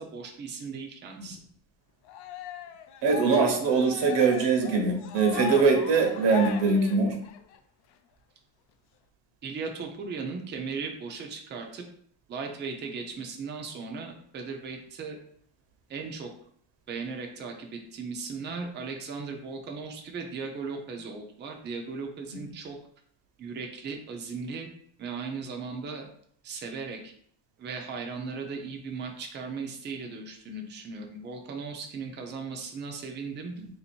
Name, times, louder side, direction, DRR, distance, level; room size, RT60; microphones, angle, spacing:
voice 1, 0.0-1.4 9.4-11.8 12.3-15.2 15.9-16.3 16.9-22.8 23.4-24.7 25.0-26.1 26.4-27.1 27.6-33.5, right 4 dB, 25° right, 2 dB, 0.4 m, -37 dB
Cheering, 2.1-7.6, left 8 dB, 65° left, 0.5 m, -38 dB
voice 2, 3.0-7.1 22.3-22.5 33.6-33.7, right 4 dB, 70° right, 3 dB, 1.0 m, -23 dB
3.5 x 2.8 x 4.3 m, 0.63 s
cardioid pair, 180°, 45 cm